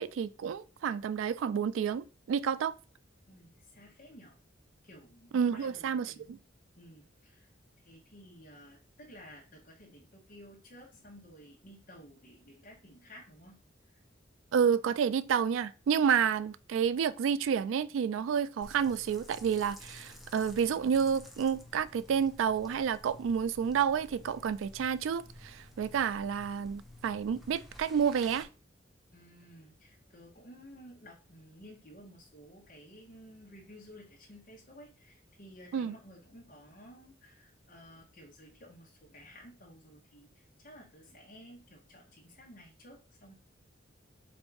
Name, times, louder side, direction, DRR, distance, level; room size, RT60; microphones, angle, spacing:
voice 1, 0.0-2.7 5.3-6.4 14.5-28.5 35.7-35.9, right 7 dB, 80° right, 0.3 m, -30 dB
voice 2, 3.3-4.4 4.8-6.3 6.8-7.5 7.8-13.6 13.9-14.0 29.1-43.3, equal, 45° left, 0.9 m, -54 dB
sound 1, 18.6-28.4, left 1 dB, ahead, 0.6 m, -52 dB
3.5 x 2.6 x 4.5 m
head